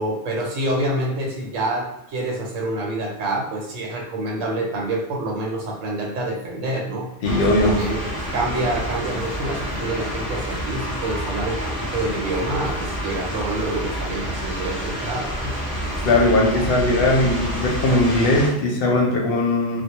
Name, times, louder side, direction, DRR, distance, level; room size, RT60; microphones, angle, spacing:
voice 1, 0.0-15.6, right 1 dB, 75° right, 0 dB, 1.0 m, -27 dB
voice 2, 7.2-7.8 16.0-19.8, left 2 dB, 60° left, -1 dB, 0.7 m, -19 dB
sound 1, 7.2-18.5, equal, 5° left, 0.9 m, -28 dB
2.1 x 2.1 x 2.8 m, 0.85 s
omnidirectional pair, 1.3 m